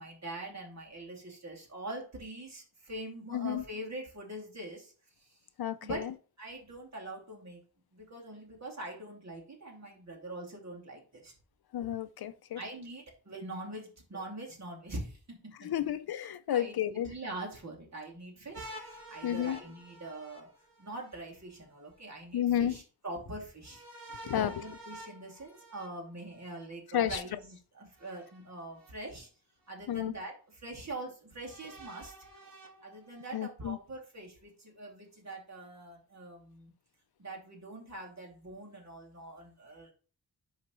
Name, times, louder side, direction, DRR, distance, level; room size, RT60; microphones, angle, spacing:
voice 1, 0.0-4.9 5.2-5.4 5.8-6.1 6.4-7.6 7.9-11.3 12.5-15.5 15.8-15.9 16.5-20.5 20.8-23.8 24.3-29.3 29.7-32.1 32.8-36.7 37.2-39.9, right 2 dB, 40° right, 2.7 m, -43 dB
voice 2, 3.3-3.6 5.6-6.1 11.7-12.6 15.6-17.1 19.2-19.6 22.3-22.8 24.3-24.5 26.9-27.2 29.9-30.1 33.3-33.8, left 10 dB, 65° left, 0.5 m, -31 dB
sound 1, 18.5-21.2 23.6-26.7 28.0-28.9 29.7-29.8 31.4-33.4, right 1 dB, 60° right, 1.8 m, -50 dB
10.5 x 4.1 x 3.1 m
wide cardioid pair, 110°, 40 cm